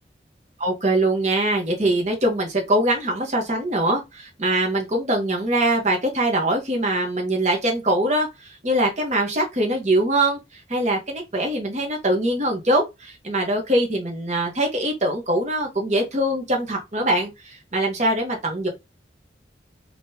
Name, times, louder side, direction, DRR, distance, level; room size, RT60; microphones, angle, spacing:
voice 1, 0.6-10.4 10.7-18.7, right 1 dB, 40° right, 1.1 m, -23 dB
3.7 x 3.0 x 2.7 m
head